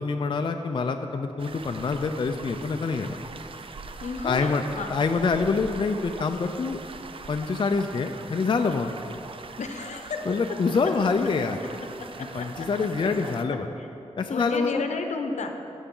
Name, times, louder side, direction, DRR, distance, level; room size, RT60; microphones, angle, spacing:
voice 1, 0.0-3.2 4.2-4.6 4.9-6.8 7.3-8.9 10.3-11.6 12.3-13.7 14.2-14.8, left 4 dB, 45° left, 5 dB, 0.4 m, -26 dB
sound 1, 1.4-13.4, right 4 dB, 50° right, 0.5 m, -42 dB
voice 2, 4.0-4.9 9.6-10.2 12.2-12.7 13.0-13.1 13.5-13.9 14.3-15.5, left 4 dB, 80° left, 5 dB, 0.8 m, -33 dB
17.0 x 7.1 x 3.8 m, 2.9 s
wide cardioid pair, 115°, 12 cm